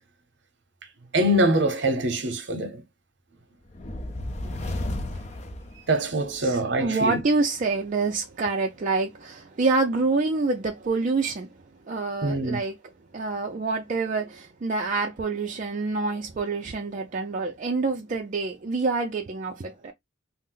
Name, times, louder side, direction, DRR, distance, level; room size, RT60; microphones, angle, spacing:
voice 1, 1.1-2.8 5.9-7.2 12.2-12.6, right 1 dB, 65° right, 0.7 m, -24 dB
sound 1, 3.7-6.4, left 1 dB, 40° left, 0.5 m, -33 dB
voice 2, 6.4-11.5 11.8-12.8 13.1-19.9, right 3 dB, 40° right, 0.4 m, -27 dB
2.5 x 2.0 x 3.7 m
head